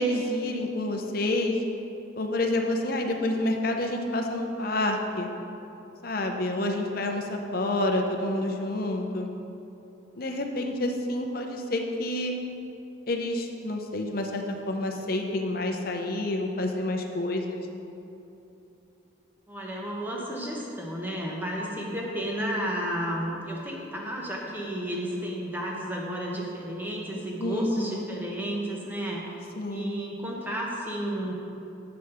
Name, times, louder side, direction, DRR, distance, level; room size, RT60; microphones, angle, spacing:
voice 1, 0.0-1.6 2.2-5.3 6.0-9.3 10.2-12.3 13.1-17.6 27.4-28.1 29.6-30.0, left 1 dB, 50° left, 3 dB, 0.6 m, -28 dB
voice 2, 19.5-31.3, equal, 10° right, -2 dB, 0.9 m, -32 dB
7.8 x 5.1 x 5.8 m, 2.9 s
head